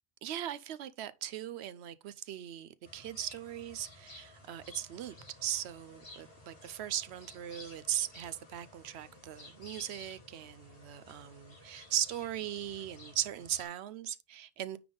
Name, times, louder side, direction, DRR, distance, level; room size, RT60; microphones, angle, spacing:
voice 1, 0.2-5.1 5.4-14.8, right 11 dB, 85° right, 0.9 m, -38 dB
sound 1, 2.8-13.7, left 2 dB, 60° left, 2.9 m, -54 dB
9.4 x 3.5 x 3.8 m
omnidirectional pair, 1.1 m